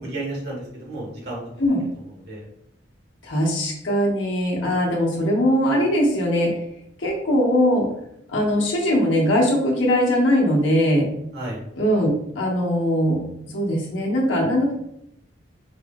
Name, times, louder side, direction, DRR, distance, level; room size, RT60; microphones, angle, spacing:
voice 1, 0.0-1.4 1.9-2.5 11.3-11.6, right 2 dB, 55° right, -3 dB, 1.4 m, -33 dB
voice 2, 3.2-6.5 7.0-7.9 8.3-11.0 11.8-12.1 12.3-13.2 13.5-14.7, equal, 85° left, -2 dB, 1.2 m, -20 dB
4.7 x 2.0 x 3.6 m, 0.75 s
head